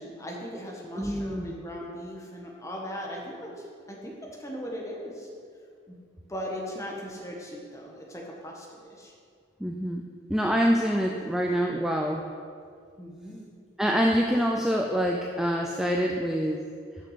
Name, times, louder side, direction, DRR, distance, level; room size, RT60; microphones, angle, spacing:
voice 1, 0.0-5.3 5.9-6.0 6.3-9.1 13.0-13.4, equal, 15° left, -2 dB, 1.3 m, -38 dB
voice 2, 1.0-1.4 9.6-10.0 10.3-12.3 13.8-16.6, equal, 5° right, 0 dB, 0.4 m, -25 dB
6.8 x 6.1 x 6.7 m, 2.2 s
head